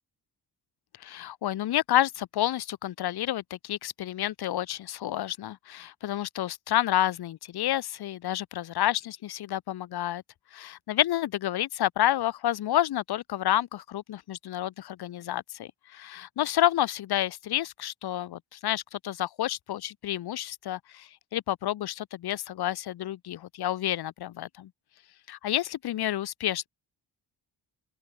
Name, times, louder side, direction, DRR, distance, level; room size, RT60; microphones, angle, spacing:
voice 1, 1.0-10.2 10.5-24.7 25.3-26.7, left 13 dB, 60° left, 0.8 m, -29 dB
open air
wide cardioid pair, 135°, 43 cm